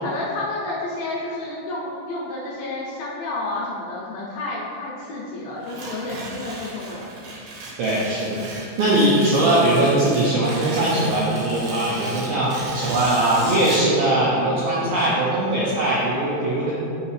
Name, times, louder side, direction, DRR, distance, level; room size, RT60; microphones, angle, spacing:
voice 1, 0.0-7.0, left 2 dB, 85° left, -6 dB, 2.0 m, -30 dB
Tearing, 5.6-13.9, right 2 dB, 70° right, 2.5 m, -36 dB
voice 2, 7.8-8.5 8.8-16.7, right 1 dB, 85° right, -7 dB, 2.1 m, -20 dB
5.8 x 5.8 x 3.2 m, 2.7 s
omnidirectional pair, 5.3 m